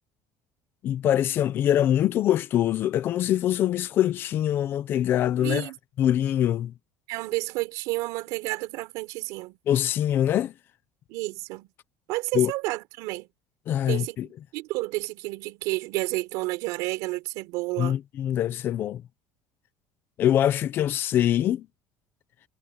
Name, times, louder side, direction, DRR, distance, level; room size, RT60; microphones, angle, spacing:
voice 1, 0.8-5.7 6.0-6.7 9.7-10.5 12.3-12.5 13.7-14.3 17.8-19.0 20.2-21.7, left 11 dB, 35° left, 0.9 m, -24 dB
voice 2, 5.4-5.8 7.1-9.6 11.1-11.7 12.1-13.3 13.9-18.0, right 21 dB, 65° right, 4.5 m, -31 dB
cardioid pair, 175°, 6 cm